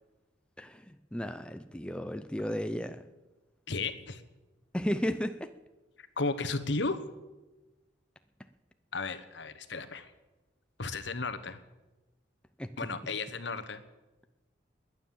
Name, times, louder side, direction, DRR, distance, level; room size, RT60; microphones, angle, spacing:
voice 1, 0.6-3.0 4.7-5.5 12.6-12.7, equal, 5° left, 9 dB, 0.5 m, -34 dB
voice 2, 3.7-4.2 6.0-7.0 8.9-10.1 10.8-11.6 12.8-13.8, left 3 dB, 65° left, 12 dB, 1.1 m, -34 dB
21.0 x 9.4 x 7.3 m, 1.1 s
head